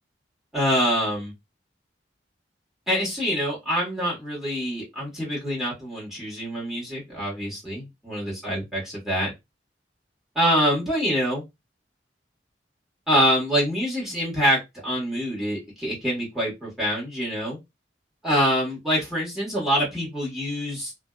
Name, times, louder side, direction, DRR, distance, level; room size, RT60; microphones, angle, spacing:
voice 1, 0.5-1.3 2.9-9.3 10.3-11.4 13.1-17.6 18.2-20.9, equal, ahead, -6 dB, 1.2 m, -25 dB
2.5 x 2.2 x 2.3 m, 0.20 s
head